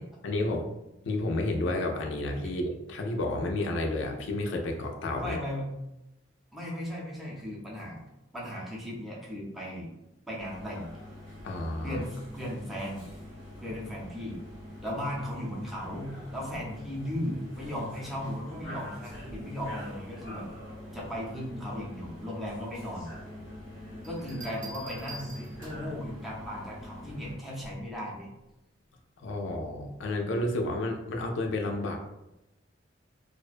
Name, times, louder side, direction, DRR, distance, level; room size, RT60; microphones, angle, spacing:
voice 1, 0.2-0.7 1.0-5.4 11.4-12.0 29.2-32.0, left 2 dB, 70° left, 2 dB, 0.4 m, -31 dB
voice 2, 5.2-5.7 6.5-8.0 8.3-9.9 10.3-10.9 11.8-13.1 13.6-14.4 14.8-20.5 20.9-23.1 24.0-28.3, equal, ahead, -5 dB, 0.5 m, -36 dB
sound 1, 10.4-27.4, left 1 dB, 90° right, 1.4 m, -44 dB
sound 2, 24.0-26.0 27.6-27.9, right 2 dB, 75° right, 0.7 m, -46 dB
2.4 x 2.1 x 2.4 m, 0.93 s
head